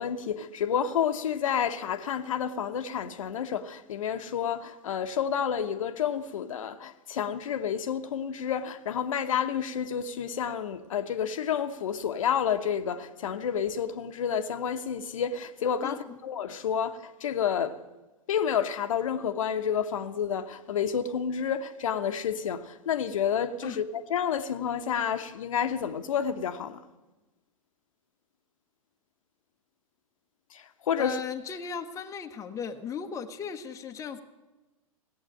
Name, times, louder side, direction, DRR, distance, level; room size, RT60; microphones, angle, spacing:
voice 1, 0.0-17.8 18.3-26.8 30.5-31.2, left 8 dB, 65° left, 1.0 m, -30 dB
voice 2, 31.0-34.2, left 7 dB, 15° left, 1.0 m, -36 dB
17.0 x 8.3 x 8.7 m
figure-of-eight pair, 110°, 18 cm